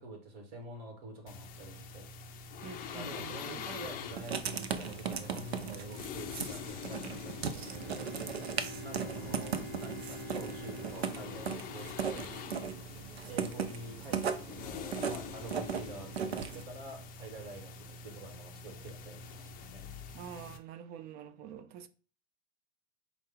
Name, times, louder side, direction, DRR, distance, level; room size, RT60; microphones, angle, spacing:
voice 1, 0.0-2.1 2.9-8.1 8.8-12.3 13.3-19.8, right 2 dB, 50° right, 1.6 m, -47 dB
sound 1, 1.3-20.6, left 5 dB, 30° left, 0.5 m, -45 dB
voice 2, 2.6-3.7 8.6-8.7 9.2-9.7 20.1-21.9, right 8 dB, 30° right, 0.5 m, -47 dB
Writing, 4.1-16.6, right 7 dB, 85° right, 0.6 m, -38 dB
Bowed string instrument, 7.5-12.5, left 1 dB, 65° right, 1.2 m, -46 dB
5.1 x 2.3 x 3.7 m
hypercardioid pair, 105°, 31 cm